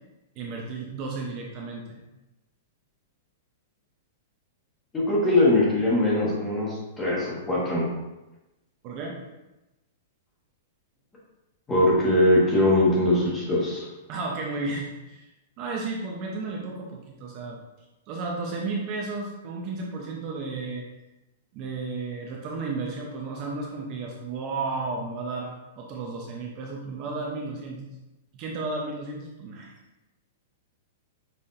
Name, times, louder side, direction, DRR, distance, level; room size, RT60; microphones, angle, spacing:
voice 1, 0.4-2.0 8.8-9.2 14.1-15.3 15.6-17.6 18.1-20.9 21.5-27.8 28.3-29.7, right 3 dB, 35° right, -1 dB, 0.6 m, -33 dB
voice 2, 5.1-7.9 11.7-13.9, left 1 dB, 15° left, -5 dB, 1.2 m, -21 dB
5.6 x 2.7 x 2.6 m, 1.0 s
hypercardioid pair, 160°, 0 cm